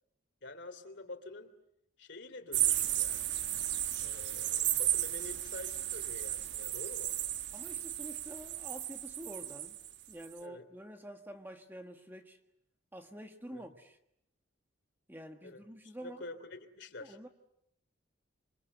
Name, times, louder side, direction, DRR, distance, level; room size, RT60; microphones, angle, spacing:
voice 1, 0.4-1.5 2.0-3.2 4.0-7.1 10.4-10.6 13.5-13.6 15.4-17.2, left 2 dB, 55° left, 3.0 m, -48 dB
sound 1, 2.5-9.9 10.2-10.4, right 12 dB, 55° right, 1.2 m, -34 dB
voice 2, 7.5-9.8 10.1-12.4 12.9-14.0 15.1-16.2 17.0-17.3, equal, 10° right, 1.6 m, -48 dB
27.5 x 25.5 x 8.1 m
head